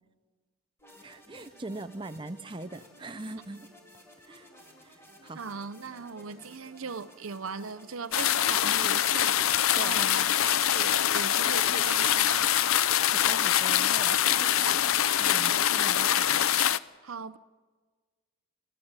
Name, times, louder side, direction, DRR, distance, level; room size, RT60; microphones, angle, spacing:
sound 1, 0.8-15.6, left 1 dB, 10° left, 3.9 m, -55 dB
voice 1, 1.0-3.7 4.2-4.5 4.8-5.4 9.7-10.1 13.1-16.4, right 2 dB, 25° right, 0.7 m, -42 dB
voice 2, 5.3-12.6 17.0-17.4, right 5 dB, 75° right, 0.8 m, -39 dB
sound 2, 8.1-16.8, left 11 dB, 80° left, 0.6 m, -24 dB
27.0 x 14.0 x 9.0 m
head